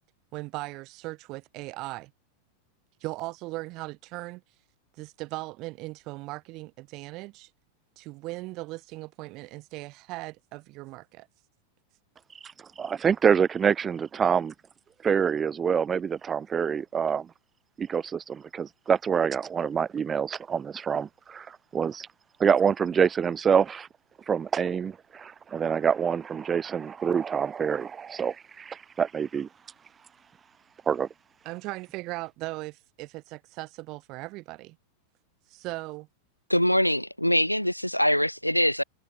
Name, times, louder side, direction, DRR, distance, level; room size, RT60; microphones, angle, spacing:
voice 1, 0.3-2.1 3.0-4.4 5.0-7.5 8.0-11.3 31.4-34.8 35.5-36.1, right 21 dB, 40° right, 4.7 m, -38 dB
voice 2, 12.8-14.5 15.0-17.3 17.8-22.1 22.4-23.9 24.3-29.5 30.9-31.1, right 7 dB, 20° right, 2.3 m, -26 dB
voice 3, 36.5-38.8, equal, 90° left, 2.7 m, -23 dB
figure-of-eight pair, 90°, 0 cm